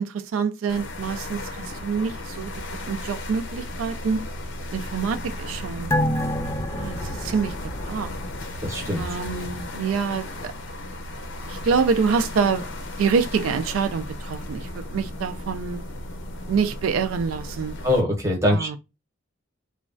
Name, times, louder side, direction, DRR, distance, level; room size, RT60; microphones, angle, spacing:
voice 1, 0.0-2.5 2.9-4.2 4.7-6.0 6.7-7.5 7.8-8.2 9.0-10.5 11.5-12.6 13.0-15.8 16.5-17.8 18.5-18.8, right 5 dB, 75° right, 0.3 m, -26 dB
sound 1, 0.7-18.0, left 1 dB, 65° left, 0.6 m, -35 dB
sound 2, 5.9-8.8 9.2-9.3, left 1 dB, 15° left, 0.3 m, -28 dB
voice 2, 8.6-9.0 17.8-18.8, left 1 dB, 15° right, 0.8 m, -22 dB
3.0 x 2.2 x 2.4 m
head